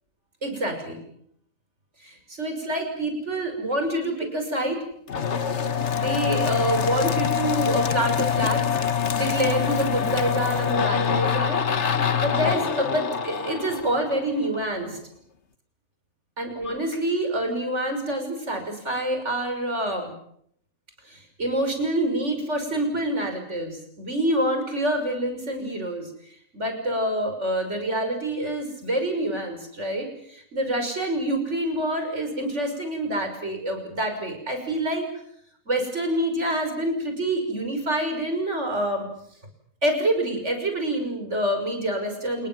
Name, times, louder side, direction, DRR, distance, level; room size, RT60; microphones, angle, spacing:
voice 1, 0.4-1.0 2.0-4.8 5.9-8.6 9.1-11.6 12.2-15.0 16.4-20.1 21.1-35.1 35.7-39.1 39.8-42.5, right 1 dB, 60° right, 5 dB, 6.3 m, -27 dB
sound 1, 5.1-14.6, left 7 dB, 60° left, 1.6 m, -25 dB
28.0 x 21.0 x 7.6 m, 0.69 s
omnidirectional pair, 1.3 m